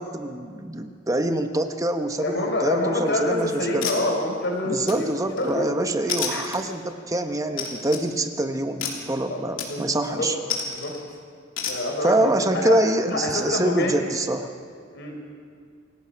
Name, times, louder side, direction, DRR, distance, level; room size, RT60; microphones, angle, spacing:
voice 1, 0.0-3.9 4.6-10.4 12.0-14.5, right 1 dB, 15° right, 7 dB, 1.0 m, -25 dB
voice 2, 2.2-5.1 5.4-5.7 6.3-6.4 9.3-9.4 9.7-10.3 10.7-10.9 11.6-12.7 13.0-13.9 14.9-15.1, left 2 dB, 60° left, 1 dB, 4.7 m, -26 dB
sound 1, 3.0-3.3 3.8-4.5 4.9-5.5 6.1-6.9 7.6-8.1 8.8-9.1 9.6-10.0 10.5-11.0 11.6-11.8, left 6 dB, 85° left, 3.2 m, -31 dB
27.5 x 17.0 x 5.8 m, 2.2 s
head